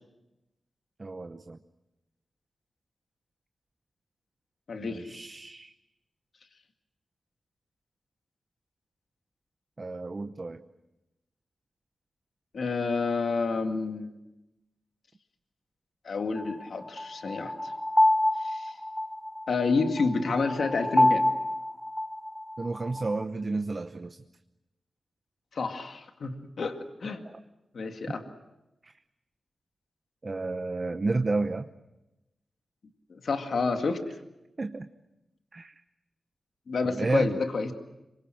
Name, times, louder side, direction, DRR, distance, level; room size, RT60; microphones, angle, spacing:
voice 1, 1.0-1.6 4.8-5.7 9.8-10.6 22.6-24.2 27.2-27.4 28.1-28.2 28.8-28.9 30.2-31.7 34.6-34.9 35.5-35.7 36.8-37.4, right 3 dB, 30° right, 8 dB, 0.8 m, -31 dB
voice 2, 4.7-5.2 12.5-14.1 16.0-17.7 18.4-18.7 19.5-21.3 25.5-27.2 27.7-28.2 33.1-34.0 36.7-37.7, left 4 dB, 60° left, 5 dB, 2.1 m, -29 dB
sound 1, 16.4-23.2, left 1 dB, 5° left, 0.8 m, -27 dB
26.5 x 24.0 x 7.8 m, 0.95 s
wide cardioid pair, 135°, 0 cm